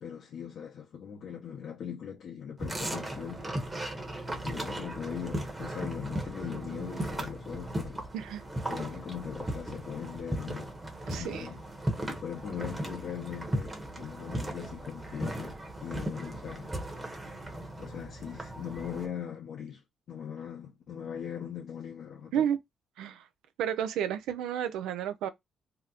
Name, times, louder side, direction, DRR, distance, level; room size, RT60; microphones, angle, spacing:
voice 1, 0.0-3.5 4.4-8.1 8.7-10.7 11.2-16.7 17.8-22.5, left 8 dB, 65° left, 0.7 m, -40 dB
sound 1, 2.6-19.1, right 1 dB, 20° right, 1.0 m, -37 dB
voice 2, 8.1-8.4 11.1-11.4 22.3-22.6 23.0-23.2 23.6-25.3, right 9 dB, 90° right, 0.5 m, -31 dB
2.9 x 2.0 x 3.6 m
cardioid pair, 90°, 0 cm